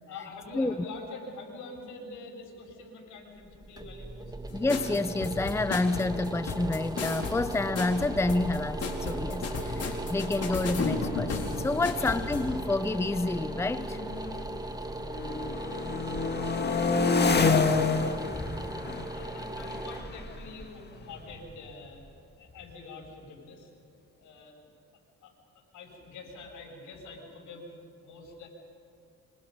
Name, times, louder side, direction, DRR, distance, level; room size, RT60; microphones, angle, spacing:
voice 1, 0.1-4.3 12.0-12.1 16.5-17.2 18.9-23.7 24.2-24.7 25.2-25.3 25.7-27.7 28.0-28.5, left 3 dB, 80° left, 7.1 m, -45 dB
sound 1, 3.4-22.3, right 2 dB, 15° right, 1.3 m, -38 dB
voice 2, 4.5-14.0 18.3-18.6, left 2 dB, 10° left, 0.7 m, -29 dB
sound 2, 4.7-12.5, left 4 dB, 55° left, 4.1 m, -34 dB
sound 3, 9.3-9.4 9.6-10.0 10.7-14.6 15.0-21.6, left 4 dB, 35° left, 1.9 m, -30 dB
26.5 x 25.5 x 5.5 m
cardioid pair, 90°, 30 cm